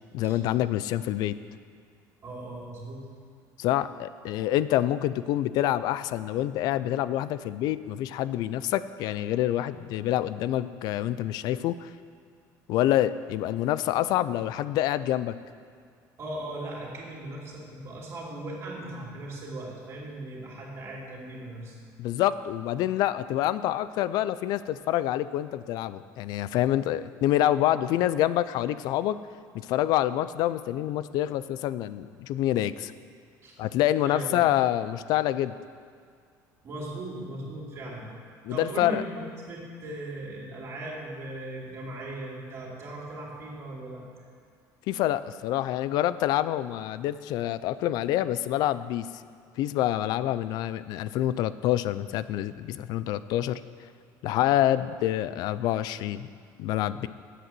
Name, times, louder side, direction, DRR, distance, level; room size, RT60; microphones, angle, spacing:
voice 1, 0.1-1.4 3.6-11.9 12.7-15.4 22.0-29.2 29.5-32.9 33.6-35.5 38.4-39.0 44.9-49.1 49.6-53.6 54.2-56.3 56.6-57.1, left 13 dB, 60° left, 15 dB, 0.4 m, -27 dB
voice 2, 2.2-3.1 16.2-21.8 33.4-33.6 34.0-34.4 36.6-38.1 38.5-44.3, right 1 dB, 40° right, -4 dB, 3.0 m, -38 dB
8.7 x 8.1 x 7.6 m, 2.1 s
cardioid pair, 150°, 8 cm